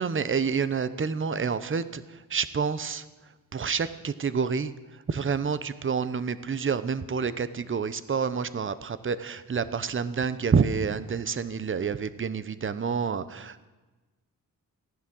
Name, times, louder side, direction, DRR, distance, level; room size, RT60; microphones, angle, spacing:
voice 1, 0.0-3.0 3.5-4.7 5.1-13.7, right 6 dB, 35° right, 14 dB, 0.8 m, -28 dB
16.0 x 11.0 x 7.7 m, 1.2 s
cardioid pair, 85°, 34 cm